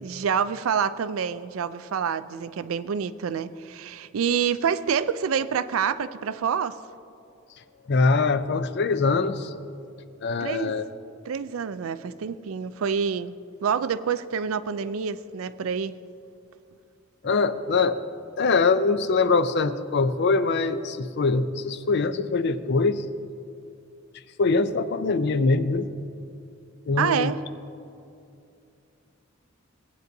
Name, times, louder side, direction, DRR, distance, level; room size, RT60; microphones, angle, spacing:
voice 1, 0.0-6.8 10.4-10.8 11.3-13.3 13.6-16.0 27.0-27.4, right 7 dB, 85° right, 0.4 m, -27 dB
voice 2, 7.9-9.5 10.2-10.8 17.2-18.0 18.4-23.0 24.4-25.9 26.9-27.3, left 4 dB, 55° left, 0.5 m, -23 dB
17.5 x 9.1 x 2.7 m
head